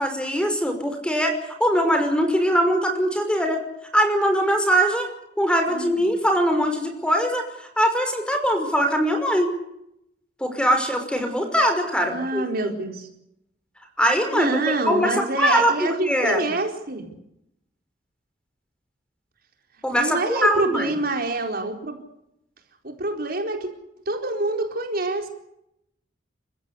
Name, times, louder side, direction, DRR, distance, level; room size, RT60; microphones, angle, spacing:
voice 1, 0.0-3.6 3.9-5.1 5.4-9.5 10.4-12.4 14.0-14.5 14.8-16.4 19.8-20.9, equal, 5° left, 6 dB, 5.5 m, -22 dB
voice 2, 5.7-6.1 12.0-13.1 14.3-17.1 19.9-22.0 22.8-23.7 24.1-25.3, right 2 dB, 55° right, 4 dB, 4.4 m, -26 dB
30.0 x 15.5 x 8.4 m, 0.80 s
head